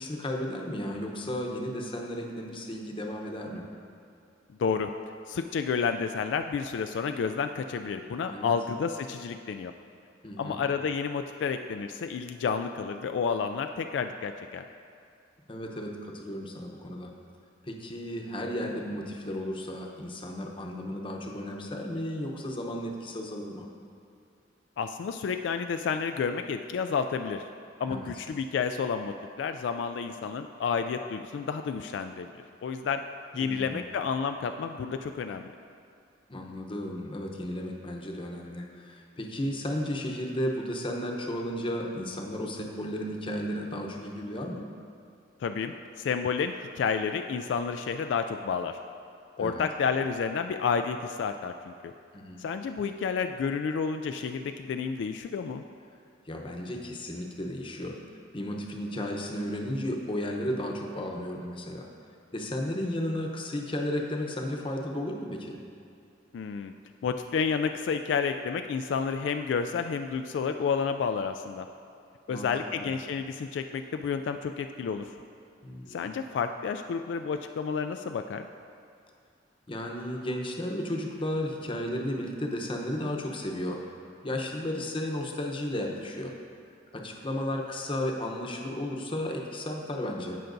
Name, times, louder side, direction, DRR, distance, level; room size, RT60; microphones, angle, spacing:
voice 1, 0.0-3.6 8.3-8.5 10.2-10.6 15.5-17.1 17.6-23.7 27.9-28.1 33.3-33.8 36.3-44.7 49.4-49.6 52.1-52.4 56.3-58.0 58.3-61.9 62.3-65.6 72.3-72.9 75.6-76.1 79.7-83.8 84.2-86.3 86.9-90.4, left 1 dB, 30° left, 1 dB, 0.8 m, -34 dB
voice 2, 4.6-4.9 5.3-9.7 10.4-14.6 24.8-27.4 27.8-32.3 32.6-33.0 33.3-35.4 45.4-48.8 49.4-51.9 52.4-55.6 66.3-66.7 67.0-71.7 72.3-75.0 75.9-78.5, left 6 dB, 70° left, 7 dB, 0.3 m, -30 dB
17.0 x 5.7 x 2.6 m, 2.4 s
head